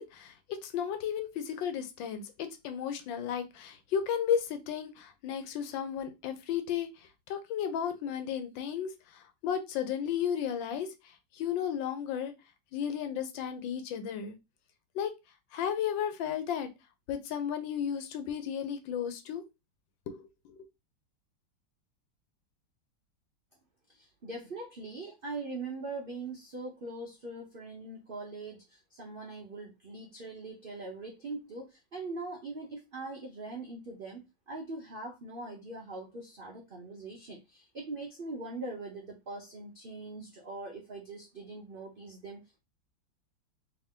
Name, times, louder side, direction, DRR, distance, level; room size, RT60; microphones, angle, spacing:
voice 1, 0.0-6.9 7.3-8.9 9.4-10.9 11.4-12.3 12.7-14.4 14.9-15.1 15.5-16.7 17.1-19.4 20.1-20.2, left 8 dB, 80° left, 8 dB, 1.4 m, -33 dB
voice 2, 23.9-42.4, right 3 dB, 75° right, 0 dB, 0.5 m, -42 dB
3.4 x 3.0 x 3.6 m, 0.24 s
omnidirectional pair, 2.0 m